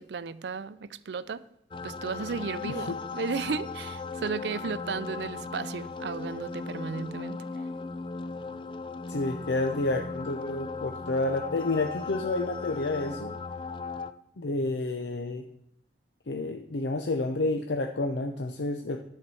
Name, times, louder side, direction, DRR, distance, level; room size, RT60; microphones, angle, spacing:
voice 1, 0.0-1.4 1.8-7.4, right 5 dB, 75° right, 0.4 m, -34 dB
sound 1, 1.7-14.1, left 4 dB, 30° left, 0.3 m, -37 dB
voice 2, 2.6-2.9 9.1-13.4 14.4-15.4 16.3-19.0, left 2 dB, 85° left, 0.6 m, -30 dB
11.0 x 4.6 x 6.9 m
head